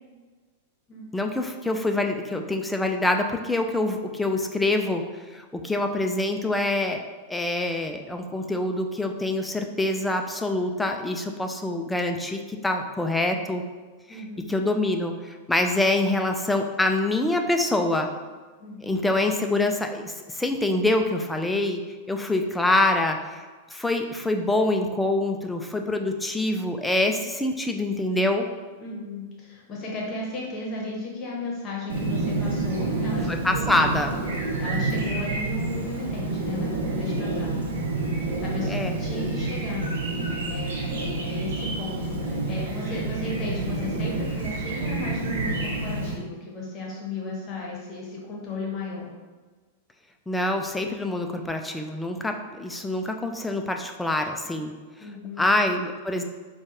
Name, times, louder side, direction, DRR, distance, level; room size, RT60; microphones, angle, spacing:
voice 1, 1.1-7.0 7.3-13.6 14.1-18.1 18.8-21.8 22.1-28.5 33.3-34.1 38.7-38.9 50.3-54.7 55.4-56.2, left 2 dB, 5° left, 4 dB, 0.3 m, -25 dB
voice 2, 14.1-14.5 18.6-19.0 28.8-33.7 34.0-34.2 34.6-39.8 40.1-49.1 55.0-55.5, left 2 dB, 35° left, -3 dB, 1.0 m, -35 dB
Chirp tweet, 31.9-46.1, right 2 dB, 70° right, 0.7 m, -28 dB
4.4 x 2.3 x 2.9 m, 1.3 s
figure-of-eight pair, 95°, 0 cm